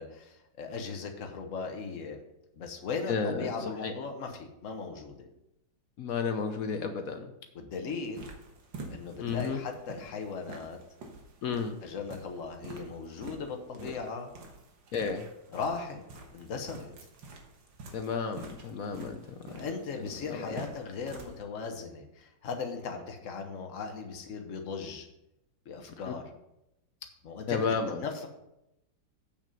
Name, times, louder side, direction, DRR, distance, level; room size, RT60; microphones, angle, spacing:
voice 1, 0.0-2.2 2.6-5.3 7.5-8.3 8.9-10.8 11.8-14.3 15.5-16.0 16.3-16.9 19.5-25.1 25.6-26.2 27.2-27.7 28.0-28.3, left 5 dB, 45° left, 4 dB, 1.3 m, -38 dB
voice 2, 3.1-3.5 3.8-3.9 6.0-7.3 9.2-9.6 11.4-11.8 13.8-13.9 14.9-15.2 17.9-19.2 19.5-19.7 20.3-20.6 26.1-26.2 27.5-28.0, left 5 dB, 70° left, 7 dB, 0.8 m, -32 dB
sound 1, 8.0-21.4, right 3 dB, 65° right, 2.0 m, -48 dB
8.4 x 6.0 x 5.3 m, 0.85 s
omnidirectional pair, 2.2 m